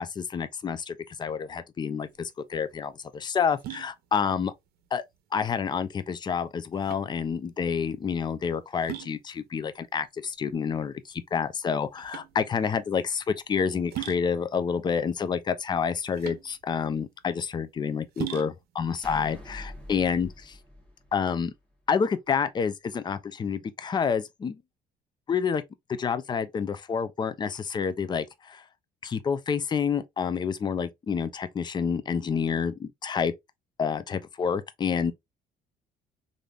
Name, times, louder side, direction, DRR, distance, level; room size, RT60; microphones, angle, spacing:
voice 1, 0.0-4.5 4.9-5.0 5.3-20.3 21.1-21.5 21.9-24.6 25.3-25.6 26.0-28.6 29.0-33.3 33.8-35.1, left 6 dB, 25° left, 0.4 m, -28 dB
sound 1, 2.1-20.6, right 12 dB, 70° right, 0.7 m, -43 dB
sound 2, 19.0-21.6, left 1 dB, 5° left, 1.2 m, -44 dB
3.2 x 2.6 x 2.3 m
cardioid pair, 110°, 17 cm